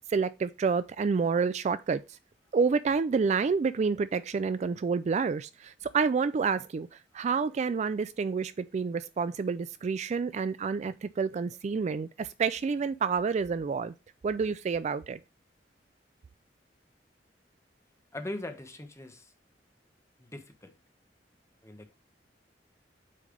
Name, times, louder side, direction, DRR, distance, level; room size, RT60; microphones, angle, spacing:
voice 1, 0.1-2.2 2.5-6.9 7.1-13.9 14.2-15.2, right 5 dB, 40° right, 0.3 m, -29 dB
voice 2, 18.1-19.3 20.2-20.7 21.6-22.0, left 1 dB, 15° left, 1.1 m, -41 dB
8.4 x 3.2 x 5.1 m
head